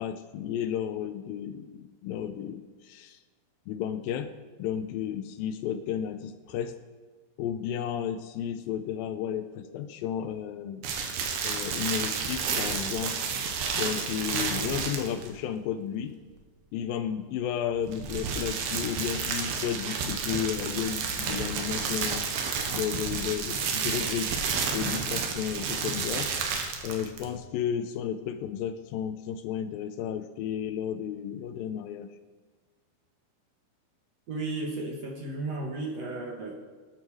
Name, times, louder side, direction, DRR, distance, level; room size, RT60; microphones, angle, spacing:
voice 1, 0.0-3.2 3.7-4.3 4.6-6.8 7.4-10.8 11.4-13.2 13.7-16.2 16.7-22.3 22.7-24.4 24.7-26.3 26.8-32.1, left 9 dB, 80° left, 9 dB, 2.2 m, -33 dB
sound 1, 10.8-15.3 17.8-27.4, right 5 dB, 80° right, 3.3 m, -31 dB
voice 2, 34.3-36.5, right 2 dB, 55° right, 0 dB, 2.0 m, -34 dB
18.5 x 9.5 x 4.8 m, 1.4 s
omnidirectional pair, 4.4 m